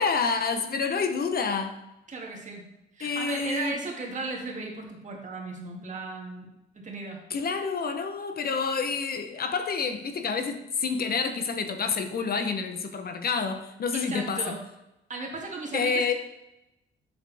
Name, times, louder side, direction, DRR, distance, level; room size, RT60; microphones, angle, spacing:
voice 1, 0.0-1.8 3.0-3.7 7.3-14.5 15.7-16.1, left 5 dB, 50° left, 7 dB, 0.9 m, -28 dB
voice 2, 2.1-2.7 3.0-6.5 6.7-7.2 13.9-14.6 15.1-16.1, right 3 dB, 40° right, -1 dB, 2.3 m, -36 dB
7.8 x 7.3 x 3.5 m, 0.90 s
cardioid pair, 90°, 20 cm